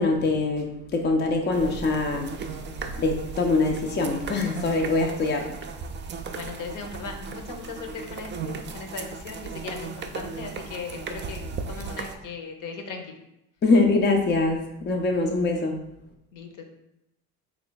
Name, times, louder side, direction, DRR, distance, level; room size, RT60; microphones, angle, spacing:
voice 1, 0.0-2.4 3.0-5.5 13.6-15.8, left 3 dB, 30° left, 2 dB, 0.4 m, -23 dB
sound 1, 1.5-12.2, right 5 dB, 30° right, 0.4 m, -36 dB
voice 2, 6.3-13.1 16.3-16.7, left 5 dB, 55° left, 4 dB, 0.7 m, -38 dB
3.2 x 2.4 x 3.8 m, 0.84 s
supercardioid pair, 85°, 38 cm